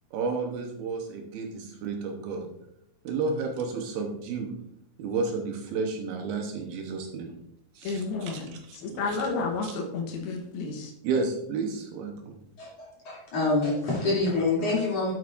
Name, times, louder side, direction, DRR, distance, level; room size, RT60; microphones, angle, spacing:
voice 1, 0.1-2.5 3.0-4.5 5.0-7.4 7.8-9.3 9.6-9.7 11.0-12.4, right 4 dB, 75° right, 2 dB, 2.6 m, -32 dB
voice 2, 7.8-10.9, left 4 dB, 80° left, 3 dB, 2.9 m, -31 dB
voice 3, 12.6-15.1, left 3 dB, 40° left, -5 dB, 3.6 m, -26 dB
9.7 x 8.0 x 2.5 m, 0.79 s
omnidirectional pair, 4.6 m